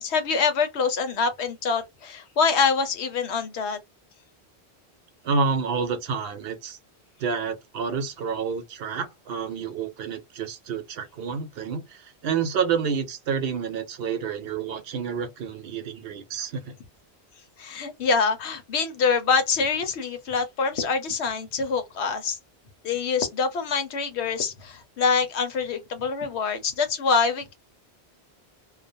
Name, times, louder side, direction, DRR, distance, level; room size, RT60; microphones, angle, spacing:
voice 1, 0.0-3.8 17.6-22.4 22.8-27.5, left 5 dB, 80° left, 1.0 m, -25 dB
voice 2, 5.2-6.8 7.2-16.7, right 5 dB, 70° right, 0.8 m, -29 dB
2.4 x 2.1 x 2.5 m
omnidirectional pair, 1.1 m